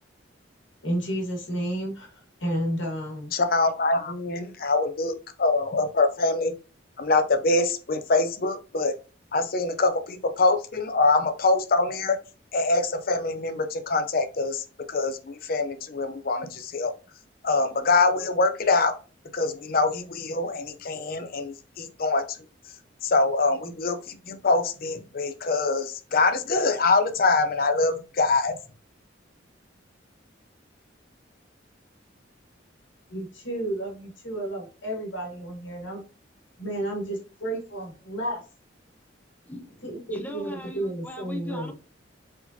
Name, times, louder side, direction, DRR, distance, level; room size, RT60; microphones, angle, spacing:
voice 1, 0.8-3.3 33.1-36.0 36.6-38.4 39.8-41.7, right 1 dB, 75° left, 0 dB, 1.5 m, -31 dB
voice 2, 3.3-6.5 7.0-8.9 9.3-12.2 12.5-16.9 17.4-18.9 19.3-22.2 23.0-28.6, left 3 dB, 50° left, 8 dB, 0.6 m, -24 dB
voice 3, 39.4-41.7, left 1 dB, 10° left, 5 dB, 0.6 m, -39 dB
4.7 x 3.7 x 2.7 m, 0.34 s
head